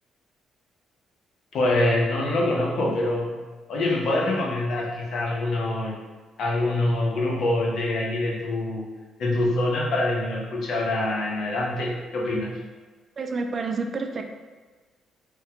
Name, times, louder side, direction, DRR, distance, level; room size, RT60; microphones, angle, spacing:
voice 1, 1.5-3.3 3.7-5.9 6.4-8.8 9.2-12.5, left 1 dB, 70° left, -2 dB, 0.7 m, -25 dB
voice 2, 13.2-14.2, right 4 dB, 45° right, 5 dB, 0.3 m, -29 dB
3.4 x 2.2 x 2.8 m, 1.4 s
cardioid pair, 90°, 0 cm